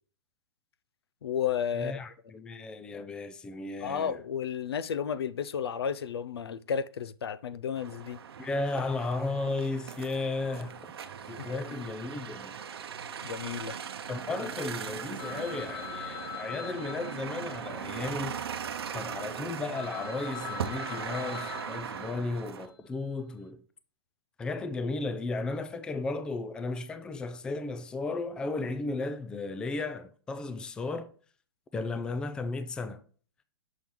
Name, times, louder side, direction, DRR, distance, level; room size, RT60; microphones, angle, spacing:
voice 1, 1.2-2.0 3.8-8.2 11.5-11.8 13.2-13.7, left 7 dB, 90° left, 0.5 m, -32 dB
voice 2, 1.7-4.2 8.4-10.9 11.3-12.6 14.1-23.6 24.4-31.1 31.7-33.0, left 3 dB, 5° left, 0.3 m, -35 dB
sound 1, 7.8-22.7, right 7 dB, 80° right, 0.7 m, -39 dB
Telephone, 15.2-19.0 19.4-19.5 19.7-22.6, left 8 dB, 60° left, 1.3 m, -43 dB
6.4 x 4.5 x 3.6 m
hypercardioid pair, 145°, 13 cm